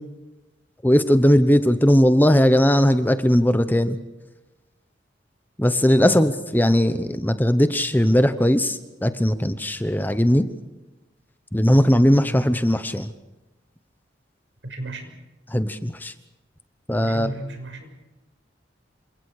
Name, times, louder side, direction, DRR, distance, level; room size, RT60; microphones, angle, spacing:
voice 1, 0.8-4.0 5.6-10.4 11.5-13.1 15.5-16.1 16.9-17.3, equal, 10° left, 10 dB, 1.0 m, -18 dB
voice 2, 12.1-12.4 14.6-15.1 17.0-17.9, right 1 dB, 80° right, 5 dB, 6.1 m, -34 dB
28.5 x 25.5 x 4.9 m, 1.1 s
head